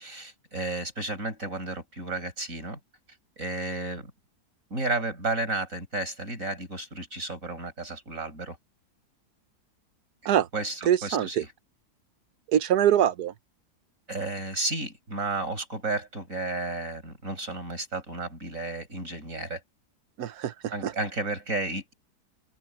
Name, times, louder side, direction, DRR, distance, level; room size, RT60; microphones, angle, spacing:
voice 1, 0.0-2.8 3.4-4.1 4.7-8.6 10.5-11.5 14.1-19.6 20.7-21.9, right 2 dB, 55° right, 7.0 m, -32 dB
voice 2, 10.9-11.4 12.5-13.3 20.2-20.5 20.8-20.9, right 10 dB, 75° right, 1.4 m, -23 dB
open air
omnidirectional pair, 1.7 m